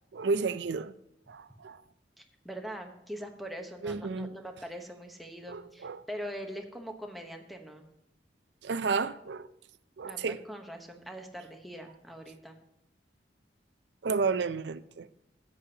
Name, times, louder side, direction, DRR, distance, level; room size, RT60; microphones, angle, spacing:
voice 1, 0.1-0.9 1.3-1.8 3.8-4.3 5.5-6.0 8.6-9.5 10.0-10.4 14.0-15.1, right 4 dB, 75° right, 0.5 m, -31 dB
voice 2, 2.2-7.9 10.0-12.6, equal, ahead, 1.0 m, -42 dB
13.5 x 8.6 x 2.9 m
head